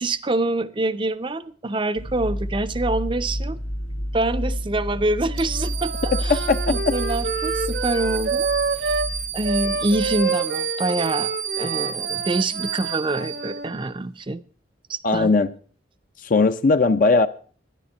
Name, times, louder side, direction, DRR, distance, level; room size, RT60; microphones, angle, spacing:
voice 1, 0.0-3.6 4.1-8.5 8.8-9.0 9.3-11.3 11.6-14.4 14.9-15.3, right 2 dB, 25° right, 13 dB, 0.5 m, -26 dB
sound 1, 2.0-10.2, equal, 85° left, 1.6 m, -30 dB
Wind instrument woodwind instrument, 5.3-9.1 9.4-13.7, right 4 dB, 55° right, 0.9 m, -28 dB
sound 2, 5.4-13.8, right 9 dB, 85° right, 2.0 m, -31 dB
voice 2, 6.3-6.7 15.0-15.5 16.2-17.3, left 3 dB, 45° left, 9 dB, 0.5 m, -18 dB
11.5 x 10.5 x 5.3 m, 0.44 s
head